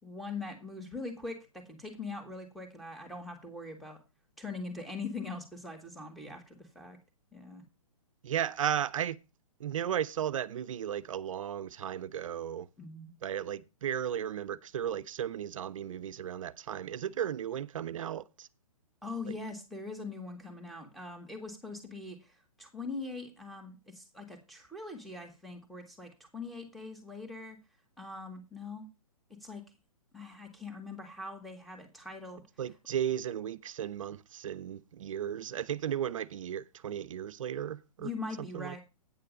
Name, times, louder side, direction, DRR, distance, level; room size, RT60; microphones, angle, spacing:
voice 1, 0.0-4.0 4.4-7.0 7.3-7.6 12.8-13.1 19.0-27.6 28.0-28.9 29.4-29.6 30.1-32.4 38.0-38.8, left 3 dB, ahead, 1.8 m, -42 dB
voice 2, 8.2-9.2 9.6-12.7 13.2-18.5 32.6-38.1 38.5-38.8, right 9 dB, 60° right, 0.6 m, -35 dB
9.4 x 6.6 x 5.2 m
hypercardioid pair, 140°, 19 cm